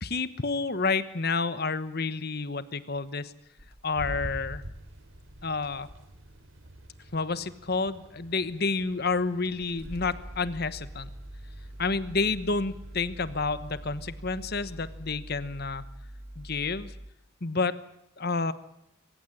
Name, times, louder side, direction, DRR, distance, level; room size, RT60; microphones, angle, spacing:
voice 1, 0.0-3.3 3.8-4.6 5.4-5.9 7.1-11.1 11.8-15.8 16.4-16.9 17.4-17.8 18.2-18.5, left 4 dB, 50° left, 14 dB, 1.1 m, -29 dB
sound 1, 2.3-2.4 2.9-3.1 3.4-6.1 6.6-7.1 8.0-8.1 8.9-9.0 9.4-17.1, right 1 dB, 50° right, 2.6 m, -45 dB
sound 2, 4.0-15.0, right 1 dB, 70° right, 3.1 m, -47 dB
26.0 x 15.5 x 9.9 m, 0.81 s
head